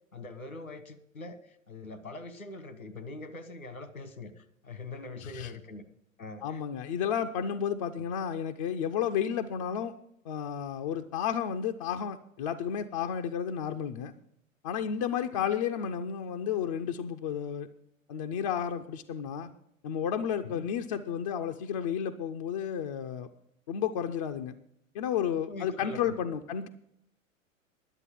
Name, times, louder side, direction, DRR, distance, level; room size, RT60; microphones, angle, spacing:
voice 1, 0.1-5.8 6.2-6.6 8.0-8.1 15.3-15.4 20.4-20.7 25.5-26.4, left 2 dB, 85° left, 12 dB, 1.3 m, -43 dB
voice 2, 6.4-9.9 10.3-14.1 14.6-17.7 18.1-19.5 19.8-23.3 23.7-24.5 24.9-26.7, left 8 dB, 25° left, 4 dB, 0.3 m, -32 dB
11.0 x 7.9 x 7.4 m, 0.74 s
figure-of-eight pair, 100°, 40 cm